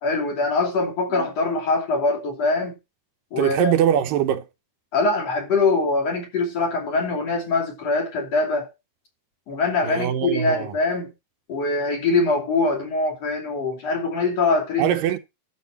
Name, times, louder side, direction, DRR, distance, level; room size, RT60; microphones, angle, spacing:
voice 1, 0.0-2.8 3.3-3.7 4.9-8.7 9.5-11.1 11.5-14.9, left 3 dB, 50° left, 3.8 m, -23 dB
voice 2, 3.4-4.5 9.8-10.7 14.8-15.2, right 10 dB, 80° right, 2.6 m, -22 dB
12.0 x 7.9 x 4.3 m
omnidirectional pair, 3.9 m